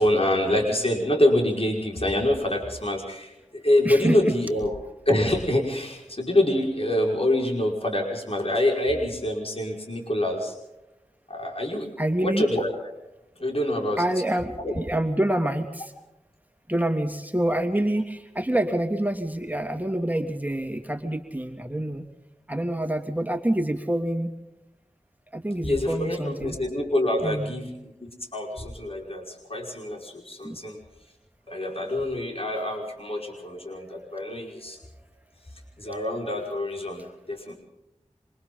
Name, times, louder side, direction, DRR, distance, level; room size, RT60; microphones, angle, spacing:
voice 1, 0.0-4.8 5.1-10.5 11.3-11.9 12.2-12.7 13.4-14.0 14.6-14.7 25.6-30.8 31.5-34.8 35.8-37.5, left 1 dB, 50° left, -1 dB, 5.5 m, -26 dB
voice 2, 3.8-4.3 12.0-12.5 14.0-15.9 16.7-22.0 22.5-24.3 25.3-26.6 27.2-27.5 30.4-30.6 33.2-33.8, right 1 dB, 15° right, 4 dB, 2.6 m, -27 dB
27.5 x 25.5 x 4.0 m, 0.91 s
wide cardioid pair, 40°, 12 cm